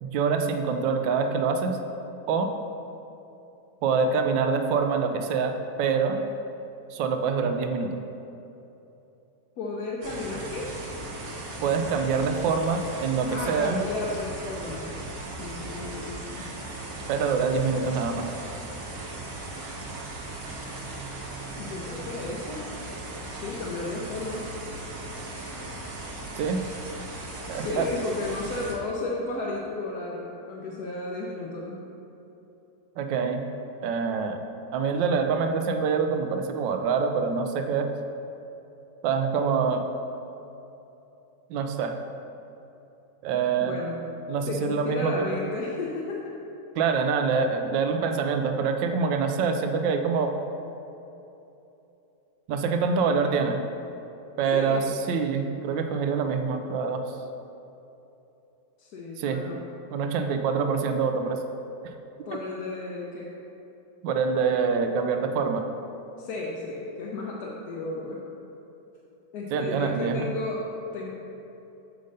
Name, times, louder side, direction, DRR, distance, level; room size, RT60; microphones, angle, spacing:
voice 1, 0.0-1.8 2.3-2.5 3.8-5.5 5.8-6.2 6.9-7.9 11.6-13.8 17.1-18.3 26.4-26.6 27.5-27.9 33.0-33.4 33.8-34.4 34.7-37.9 39.0-39.8 41.5-42.0 43.2-43.8 44.3-45.3 46.8-50.3 52.5-53.6 54.4-57.0 59.2-59.4 59.9-61.4 64.0-65.7 69.5-70.3, right 5 dB, 80° right, 6 dB, 1.3 m, -25 dB
voice 2, 9.6-10.7 13.3-15.0 15.4-16.5 21.6-22.6 23.3-24.5 27.5-31.8 43.6-44.0 44.5-46.4 54.5-55.0 58.8-59.7 62.3-63.3 66.2-68.2 69.3-71.1, left 2 dB, 65° left, -3 dB, 1.2 m, -33 dB
sound 1, 10.0-28.7, right 2 dB, 50° right, 1.3 m, -38 dB
7.6 x 5.3 x 5.1 m, 2.9 s
omnidirectional pair, 2.0 m